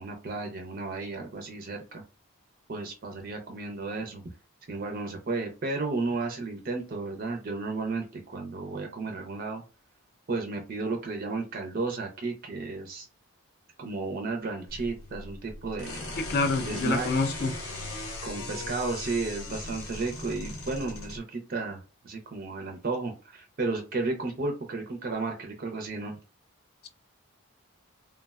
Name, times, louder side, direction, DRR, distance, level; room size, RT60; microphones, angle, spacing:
voice 1, 0.0-2.0 2.7-4.2 4.7-9.6 10.3-13.1 13.8-16.2 16.6-17.1 18.2-26.2, right 3 dB, 40° right, 3 dB, 0.4 m, -33 dB
sound 1, 14.7-21.2, left 2 dB, 75° left, 0.8 m, -38 dB
voice 2, 16.3-17.5, left 3 dB, 45° left, 7 dB, 0.4 m, -27 dB
3.3 x 2.1 x 2.2 m, 0.32 s
head